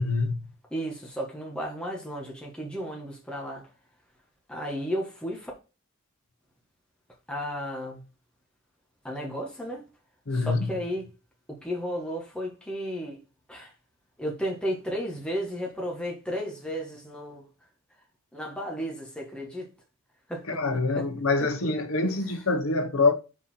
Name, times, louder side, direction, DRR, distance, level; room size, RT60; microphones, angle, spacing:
voice 1, 0.0-0.5 10.3-10.7 20.5-23.1, left 3 dB, 90° left, 1.1 m, -25 dB
voice 2, 0.7-3.6 4.5-5.5 7.3-8.0 9.0-9.8 10.3-11.1 11.5-13.2 13.5-13.7 14.2-17.5 18.3-19.7 20.3-20.6 20.9-21.0 21.4-21.7 22.0-22.4, equal, 5° left, 1.4 m, -34 dB
5.0 x 4.1 x 5.5 m
head